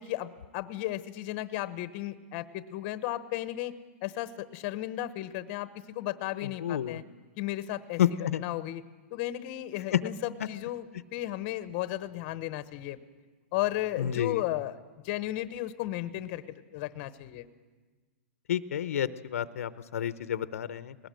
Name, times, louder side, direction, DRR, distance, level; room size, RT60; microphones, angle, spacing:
voice 1, 0.0-3.7 4.0-7.0 7.4-8.8 9.1-13.0 13.5-14.7 15.0-17.5, left 15 dB, 35° left, 12 dB, 1.0 m, -34 dB
voice 2, 6.6-7.0 8.0-8.4 9.9-10.0 10.4-10.5 14.0-14.4 18.5-20.9, left 10 dB, 80° left, 13 dB, 0.8 m, -29 dB
20.5 x 18.5 x 7.7 m, 1.3 s
hypercardioid pair, 155°, 8 cm